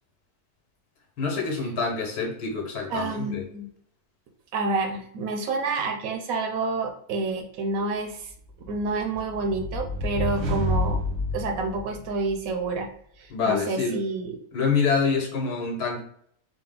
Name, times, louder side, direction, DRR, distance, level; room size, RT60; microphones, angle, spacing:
voice 1, 1.2-3.4 13.3-14.0 14.5-16.0, left 5 dB, 80° left, 1 dB, 1.5 m, -26 dB
voice 2, 2.9-3.7 4.5-8.3 8.7-11.0 11.3-12.9 13.2-14.4, right 3 dB, 70° right, 4 dB, 1.0 m, -28 dB
sound 1, 8.6-12.5, left 1 dB, 90° right, 1.5 m, -29 dB
4.1 x 2.0 x 3.7 m, 0.63 s
omnidirectional pair, 1.6 m